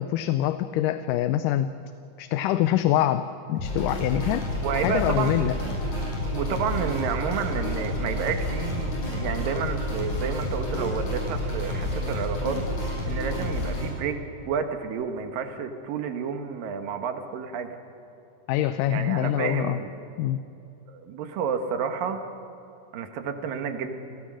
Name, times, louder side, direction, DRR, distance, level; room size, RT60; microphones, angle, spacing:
voice 1, 0.0-1.7 2.2-5.5 18.5-19.8 20.2-20.4, left 12 dB, 80° left, 11 dB, 2.2 m, -25 dB
sound 1, 3.6-13.9, left 1 dB, 60° left, 8.2 m, -29 dB
voice 2, 4.6-5.3 5.6-5.7 6.2-12.6 13.1-14.2 14.5-17.7 18.9-19.9 20.9-22.2 22.9-24.0, right 6 dB, 90° right, 6 dB, 3.2 m, -30 dB
29.5 x 18.0 x 6.3 m, 2.8 s
omnidirectional pair, 3.8 m